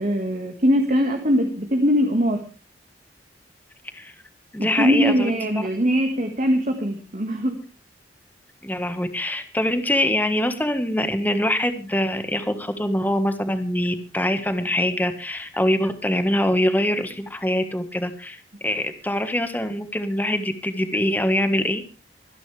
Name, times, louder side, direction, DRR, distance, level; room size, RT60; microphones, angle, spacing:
voice 1, 0.0-2.4 4.6-7.6, equal, 45° right, 4 dB, 1.9 m, -21 dB
voice 2, 4.5-5.3 8.6-21.8, left 1 dB, 10° left, 8 dB, 1.4 m, -24 dB
25.0 x 10.5 x 3.4 m, 0.33 s
head